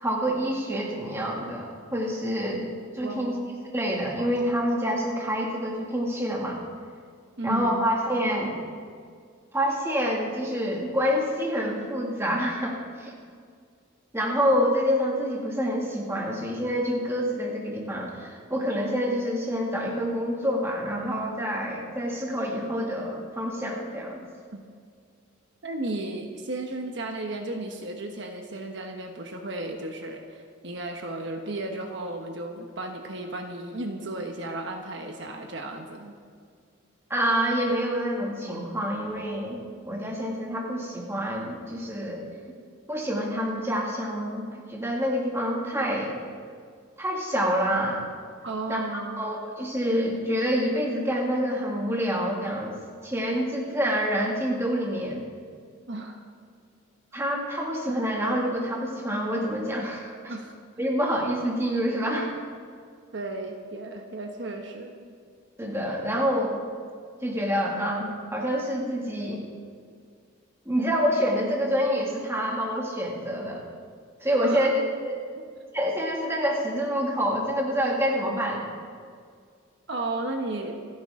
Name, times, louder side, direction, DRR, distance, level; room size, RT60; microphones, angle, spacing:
voice 1, 0.0-2.7 2.9-3.3 3.7-6.6 7.4-8.6 9.5-13.1 14.1-24.2 37.1-42.2 42.9-46.2 47.0-48.0 48.7-48.8 49.2-52.7 53.0-55.2 57.1-60.4 60.8-62.3 65.6-66.6 67.2-69.4 70.7-73.6 74.2-75.2 75.7-78.7, equal, 15° right, -2 dB, 2.2 m, -27 dB
voice 2, 3.0-3.5 7.4-7.9 24.5-24.6 25.6-36.2 48.4-49.2 55.9-56.2 60.3-60.5 63.1-65.1 74.4-74.7 79.9-80.8, right 2 dB, 60° right, 3 dB, 1.2 m, -34 dB
27.5 x 10.0 x 3.7 m, 2.1 s
head